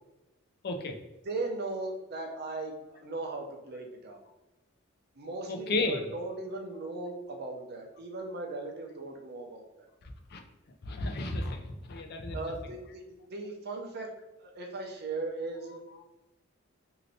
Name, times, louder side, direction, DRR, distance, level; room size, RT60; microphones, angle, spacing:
voice 1, 0.6-0.9 5.5-6.1 10.3-10.4 10.9-12.4, left 2 dB, 50° left, 4 dB, 0.5 m, -32 dB
voice 2, 1.2-4.2 5.2-9.9 12.3-14.1 14.4-15.8, right 2 dB, 50° right, 2 dB, 0.6 m, -38 dB
3.1 x 2.8 x 2.7 m, 1.0 s
head